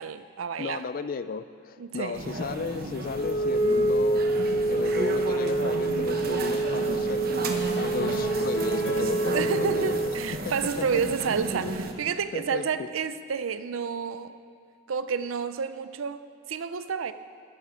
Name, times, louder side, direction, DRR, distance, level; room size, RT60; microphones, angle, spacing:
voice 1, 0.0-0.8 1.8-2.2 9.0-14.3 14.9-16.2 16.5-17.1, right 6 dB, 85° right, 12 dB, 0.5 m, -30 dB
voice 2, 0.6-4.2 4.7-7.4 7.8-10.0 10.4-11.0 12.3-12.9, left 5 dB, 45° left, 13 dB, 0.3 m, -34 dB
sound 1, 2.1-11.9, right 2 dB, 50° right, 0.9 m, -34 dB
Wind instrument woodwind instrument, 3.1-10.2, right 2 dB, 25° left, 1.5 m, -26 dB
sound 2, 8.0-11.5, equal, 60° left, 1.5 m, -36 dB
12.0 x 8.5 x 5.1 m, 2.3 s
head